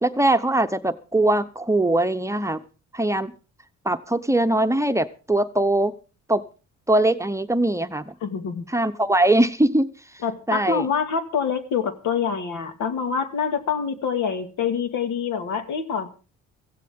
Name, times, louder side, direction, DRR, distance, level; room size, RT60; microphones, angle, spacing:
voice 1, 0.0-2.6 2.9-3.3 3.8-5.9 6.3-6.4 6.9-8.1 8.7-9.9 10.5-10.9, right 1 dB, 10° right, 9 dB, 0.9 m, -21 dB
voice 2, 8.2-8.7 10.2-16.1, left 6 dB, 80° left, 8 dB, 2.2 m, -26 dB
16.5 x 15.5 x 3.7 m, 0.35 s
cardioid pair, 90°, 30 cm